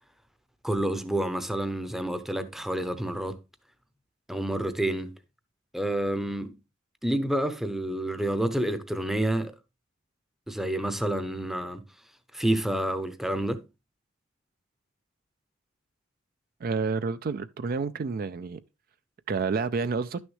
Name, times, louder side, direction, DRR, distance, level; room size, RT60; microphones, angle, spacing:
voice 1, 0.6-3.4 4.3-5.2 5.7-6.5 7.0-9.5 10.5-11.8 12.3-13.6, right 1 dB, ahead, 0.6 m, -28 dB
voice 2, 16.6-18.6 19.3-20.2, right 4 dB, 50° right, 0.4 m, -29 dB
11.5 x 6.2 x 3.1 m
head